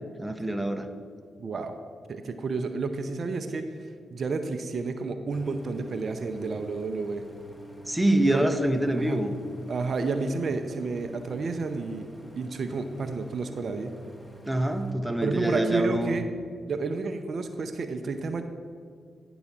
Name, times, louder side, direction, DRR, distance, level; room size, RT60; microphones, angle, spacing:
voice 1, 0.2-0.9 7.9-9.3 14.5-16.2, right 1 dB, 10° right, 6 dB, 0.9 m, -25 dB
voice 2, 1.4-1.7 2.1-7.2 8.3-8.5 9.0-9.2 9.7-12.1 12.4-13.9 15.2-16.2 16.7-18.4, right 4 dB, 60° right, 7 dB, 0.6 m, -31 dB
Idling, 5.3-14.9, equal, 10° left, 1.3 m, -47 dB
9.5 x 3.9 x 7.3 m, 2.1 s
hypercardioid pair, 40°, 0 cm